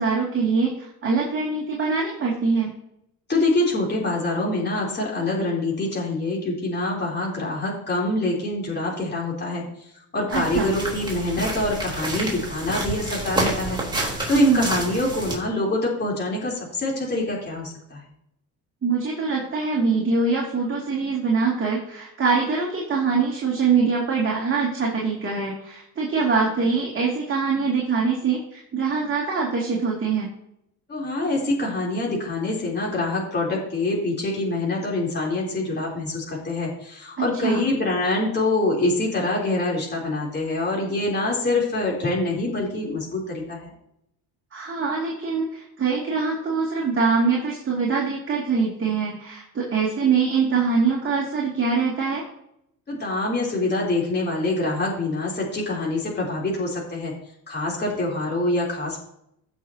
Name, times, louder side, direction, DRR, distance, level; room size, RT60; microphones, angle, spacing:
voice 1, 0.0-2.7 10.3-10.7 14.3-14.7 18.8-30.3 37.2-37.6 44.5-52.3, right 4 dB, 30° right, -3 dB, 2.7 m, -23 dB
voice 2, 3.3-9.6 10.1-18.0 30.9-43.7 52.9-57.1 57.5-59.0, left 2 dB, 25° left, -3 dB, 3.6 m, -25 dB
sound 1, 10.3-15.4, right 2 dB, 10° right, 3.7 m, -29 dB
16.5 x 6.2 x 2.8 m, 0.78 s
cardioid pair, 100°, 38 cm